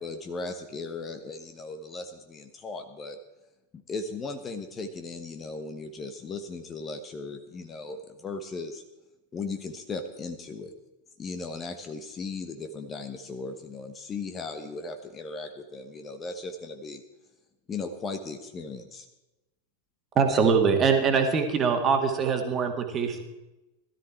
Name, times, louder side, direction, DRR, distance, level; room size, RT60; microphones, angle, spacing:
voice 1, 0.0-3.2 3.9-8.8 9.3-10.7 11.2-17.0 17.7-19.1, left 3 dB, 20° left, 7 dB, 1.1 m, -37 dB
voice 2, 20.2-23.2, right 5 dB, 25° right, 4 dB, 1.9 m, -23 dB
17.0 x 13.0 x 4.5 m, 1.0 s
figure-of-eight pair, 90°, 0 cm